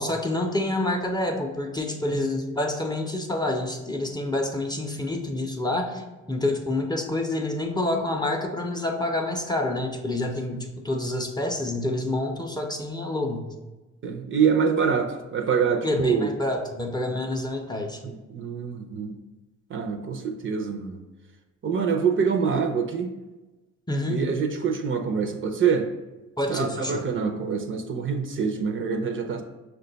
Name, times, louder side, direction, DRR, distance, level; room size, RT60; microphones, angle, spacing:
voice 1, 0.0-13.4 15.8-18.0 23.9-24.2 26.4-27.0, left 1 dB, 15° left, 2 dB, 0.5 m, -28 dB
voice 2, 14.0-16.3 18.0-19.1 19.7-21.0 21.6-23.1 24.1-25.9 26.5-29.4, right 6 dB, 40° right, 5 dB, 0.5 m, -25 dB
5.9 x 2.2 x 3.9 m, 1.1 s
cardioid pair, 90°, 30 cm